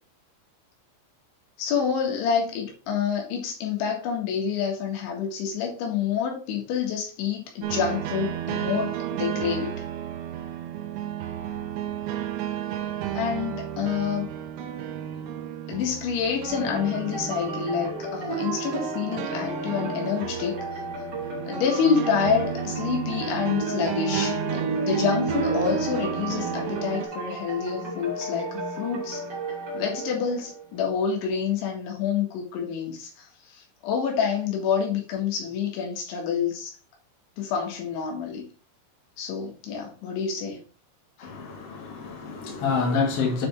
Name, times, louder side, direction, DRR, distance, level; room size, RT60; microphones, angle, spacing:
voice 1, 1.6-9.8 13.1-14.3 15.7-20.8 21.5-29.2 29.7-36.7 37.4-38.5 39.2-40.6, left 7 dB, 80° left, 4.0 m, -28 dB
sound 1, 7.6-27.1, right 10 dB, 80° right, 3.0 m, -33 dB
sound 2, 16.5-30.9, right 2 dB, 30° right, 2.4 m, -32 dB
voice 2, 41.2-43.5, left 4 dB, 45° left, 2.3 m, -27 dB
8.5 x 5.2 x 3.5 m
omnidirectional pair, 5.4 m